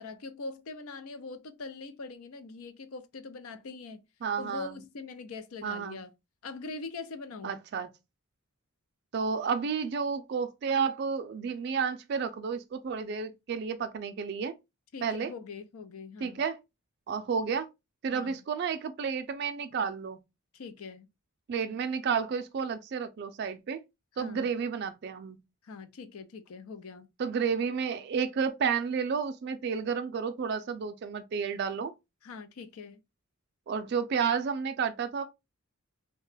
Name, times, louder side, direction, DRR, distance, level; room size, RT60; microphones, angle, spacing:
voice 1, 0.0-4.0 4.4-6.1 6.4-7.6 14.9-16.4 18.1-18.4 20.5-21.1 24.2-24.5 25.6-27.1 32.2-33.0, left 4 dB, 80° left, 0.5 m, -42 dB
voice 2, 4.2-4.7 5.6-6.0 7.4-7.9 9.1-14.5 15.0-15.3 16.2-16.6 17.1-17.7 18.0-20.2 21.5-23.8 24.2-25.4 27.2-31.9 33.7-35.2, right 6 dB, 50° right, 0.3 m, -31 dB
2.8 x 2.2 x 3.1 m
head